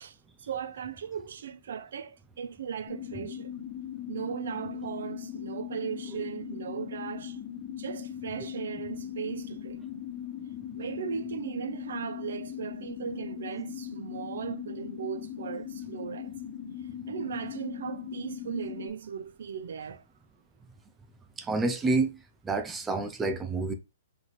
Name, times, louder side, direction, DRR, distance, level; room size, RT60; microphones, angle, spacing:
voice 1, 0.0-3.5 4.1-7.4 7.7-9.8 10.7-16.3 17.1-20.0, right 7 dB, 70° right, 0.7 m, -37 dB
sound 1, 2.9-18.9, left 10 dB, 45° left, 1.7 m, -39 dB
voice 2, 21.4-22.1 22.4-23.7, right 3 dB, 10° right, 0.5 m, -28 dB
4.0 x 3.2 x 4.0 m
hypercardioid pair, 165°, 0 cm